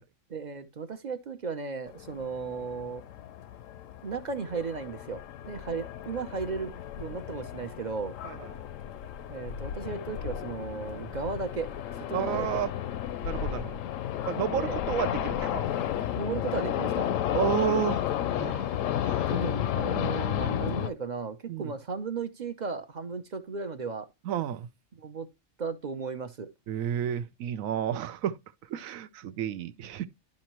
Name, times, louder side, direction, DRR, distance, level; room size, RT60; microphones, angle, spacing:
voice 1, 0.3-3.0 4.0-8.2 9.3-11.7 12.1-12.6 14.5-14.8 16.1-17.1 19.3-24.1 24.9-25.3 25.6-26.5, right 4 dB, 45° right, 0.6 m, -35 dB
sound 1, 1.9-20.9, left 10 dB, 80° left, 1.0 m, -32 dB
voice 2, 12.1-12.7 13.2-13.8 14.3-15.7 17.3-18.7 19.0-19.3 21.5-21.7 24.2-24.7 26.7-28.4 28.7-30.1, right 10 dB, 85° right, 1.1 m, -31 dB
12.0 x 5.4 x 3.0 m
omnidirectional pair, 1.4 m